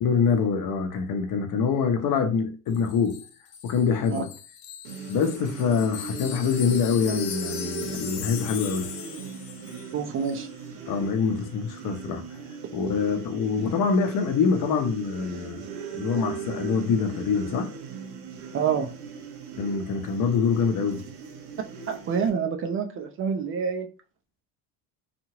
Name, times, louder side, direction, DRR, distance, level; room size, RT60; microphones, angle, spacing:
voice 1, 0.0-3.2 3.6-4.3 5.1-8.9 10.9-12.2 12.7-15.6 15.9-17.7 19.6-21.0, left 5 dB, 45° left, 0.8 m, -25 dB
Wind chime, 2.7-10.0 10.2-10.4, left 9 dB, 85° left, 0.6 m, -39 dB
sound 1, 4.8-22.3, right 5 dB, 70° right, 0.9 m, -39 dB
voice 2, 9.9-10.5 18.5-18.9 21.9-23.9, right 6 dB, 30° right, 0.5 m, -27 dB
2.7 x 2.5 x 3.0 m
hypercardioid pair, 75°, 48 cm